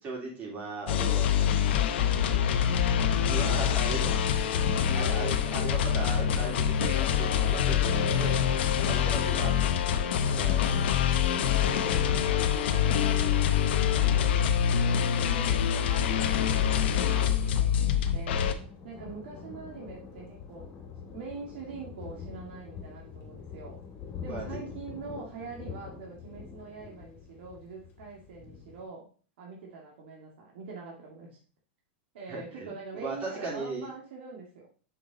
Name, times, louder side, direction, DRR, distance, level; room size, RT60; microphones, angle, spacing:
voice 1, 0.0-1.4 3.3-4.1 4.9-8.3 8.8-9.5 10.3-10.7 24.2-24.4 32.3-32.7 33.0-33.9, right 3 dB, 30° right, -3 dB, 3.8 m, -37 dB
sound 1, 0.9-18.5, left 9 dB, 70° left, 0.8 m, -25 dB
voice 2, 8.8-9.8 10.2-10.9 11.4-15.0 15.3-18.4 18.8-20.7 21.0-23.8 24.2-29.1 29.4-31.4 32.1-34.7, right 4 dB, 70° right, -2 dB, 2.1 m, -44 dB
Thunder, 16.5-28.8, left 6 dB, 35° left, 2.5 m, -45 dB
6.7 x 5.9 x 4.0 m, 0.40 s
supercardioid pair, 130°, 6 cm